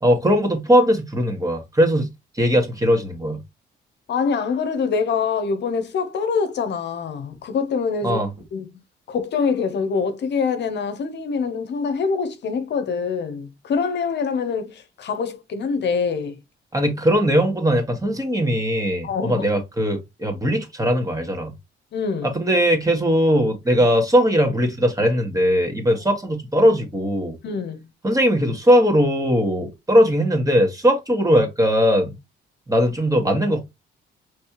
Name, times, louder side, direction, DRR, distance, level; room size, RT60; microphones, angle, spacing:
voice 1, 0.0-2.1 2.3-3.4 8.0-8.3 16.7-21.5 22.2-27.4 28.0-32.2 32.7-33.6, equal, 15° right, 1.7 m, -19 dB
voice 2, 4.1-8.2 8.5-8.7 9.1-16.4 19.0-19.4 21.9-22.3 23.8-23.9 25.9-26.0 27.4-27.8, left 5 dB, 60° left, 0.9 m, -25 dB
5.3 x 3.3 x 2.9 m
cardioid pair, 90°, 20 cm